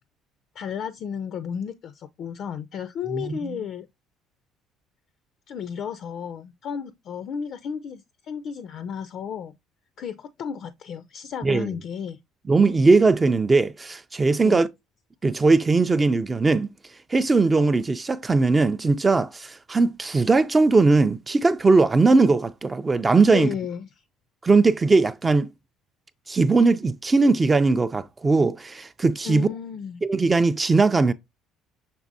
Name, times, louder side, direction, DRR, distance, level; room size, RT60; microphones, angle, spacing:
voice 1, 0.6-3.9 5.5-9.5 10.0-12.2 14.4-14.6 23.3-23.9 29.2-30.0, left 7 dB, 55° left, 0.4 m, -33 dB
voice 2, 3.1-3.6 11.4-11.7 12.5-14.7 15.2-16.7 17.1-23.5 24.4-25.5 26.3-29.5 30.0-31.1, right 3 dB, 20° right, 0.3 m, -19 dB
6.1 x 3.3 x 2.6 m
cardioid pair, 115°, 0 cm